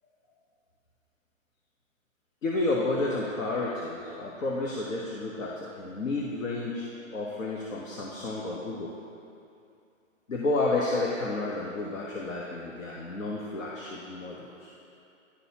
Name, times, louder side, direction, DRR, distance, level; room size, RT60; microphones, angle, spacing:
voice 1, 2.4-6.9 7.1-8.9 10.3-14.7, left 2 dB, 75° left, -4 dB, 1.0 m, -31 dB
11.5 x 4.0 x 2.8 m, 2.6 s
hypercardioid pair, 130°, 39 cm